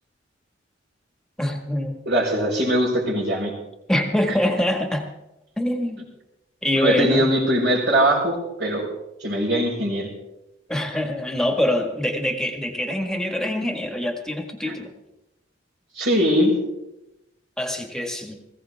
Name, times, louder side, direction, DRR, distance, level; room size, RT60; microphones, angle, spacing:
voice 1, 1.4-2.0 3.9-5.0 5.6-6.0 6.6-7.3 10.7-14.9 17.6-18.4, left 1 dB, 5° left, 3 dB, 1.8 m, -24 dB
voice 2, 2.0-3.5 6.8-8.9 9.2-10.1 14.6-14.7 15.9-16.5, equal, 65° right, -9 dB, 4.7 m, -21 dB
19.5 x 16.0 x 3.6 m, 0.92 s
head